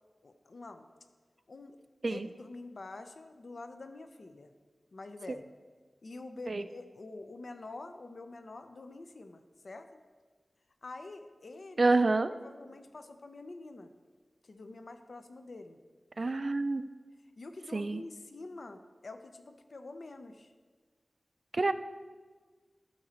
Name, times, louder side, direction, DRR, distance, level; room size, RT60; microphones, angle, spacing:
voice 1, 0.2-0.9 1.5-1.8 2.1-4.5 4.9-5.4 6.0-10.0 10.8-11.9 12.4-13.9 14.4-15.8 17.4-20.5, left 2 dB, 65° left, 8 dB, 0.5 m, -46 dB
voice 2, 11.8-12.3 16.2-16.8 17.7-18.0 21.5-21.7, right 3 dB, 50° right, 12 dB, 0.3 m, -27 dB
12.0 x 4.0 x 4.3 m, 1.5 s
wide cardioid pair, 75°, 0 cm